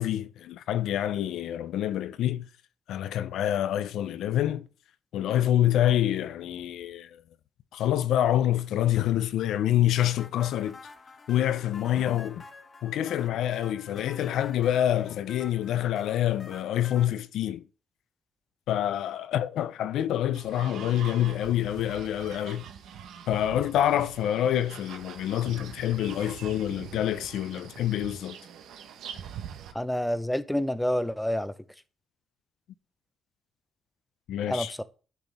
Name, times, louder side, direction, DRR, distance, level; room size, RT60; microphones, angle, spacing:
voice 1, 0.0-2.5 2.9-4.7 5.1-7.1 7.7-10.8 11.3-12.4 12.8-17.6 18.7-22.7 23.3-28.4 34.3-34.7, left 11 dB, 80° left, 0.5 m, -27 dB
sound 1, 10.2-17.1, left 4 dB, 40° left, 1.3 m, -48 dB
sound 2, 20.3-29.7, right 8 dB, 80° right, 1.0 m, -43 dB
voice 2, 29.7-31.5 34.5-34.8, equal, 5° left, 0.8 m, -28 dB
10.5 x 5.9 x 3.5 m
cardioid pair, 90°, 0 cm